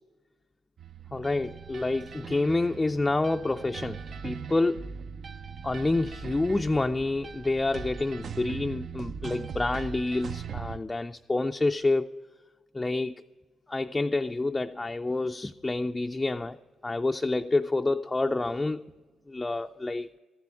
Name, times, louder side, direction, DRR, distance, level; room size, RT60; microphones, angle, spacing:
sound 1, 0.8-10.8, right 6 dB, 60° right, 0.4 m, -40 dB
voice 1, 1.1-4.0 4.2-4.8 5.6-12.2 12.7-13.2 13.7-16.6 16.8-18.9 19.3-20.1, left 2 dB, 20° left, 0.4 m, -28 dB
13.5 x 7.5 x 9.7 m
supercardioid pair, 50°, 0 cm